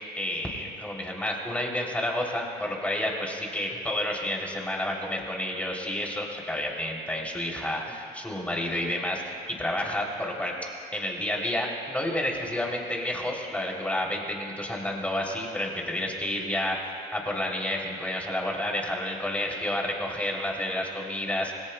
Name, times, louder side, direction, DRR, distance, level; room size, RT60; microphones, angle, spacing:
voice 1, 0.2-16.8 17.1-21.5, left 1 dB, 10° left, -1 dB, 3.0 m, -30 dB
27.0 x 20.0 x 2.2 m, 2.5 s
cardioid pair, 110°, 17 cm